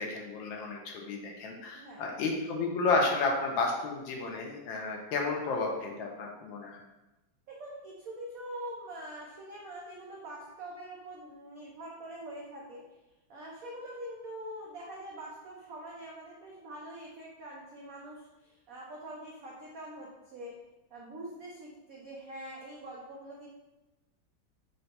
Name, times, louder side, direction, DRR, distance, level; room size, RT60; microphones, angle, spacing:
voice 1, 0.0-6.8, left 3 dB, 75° left, 1 dB, 1.3 m, -32 dB
voice 2, 7.5-12.8 13.3-20.5 20.9-23.5, right 1 dB, 90° right, -3 dB, 0.7 m, -44 dB
4.0 x 2.2 x 4.1 m, 1.0 s
omnidirectional pair, 2.2 m